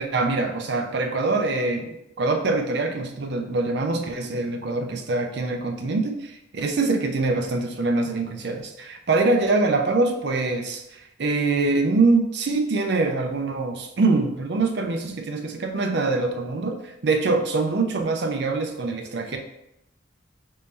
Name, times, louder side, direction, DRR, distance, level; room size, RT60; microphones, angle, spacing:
voice 1, 0.0-19.4, right 3 dB, 60° right, 5 dB, 0.5 m, -24 dB
3.7 x 2.7 x 4.4 m, 0.86 s
head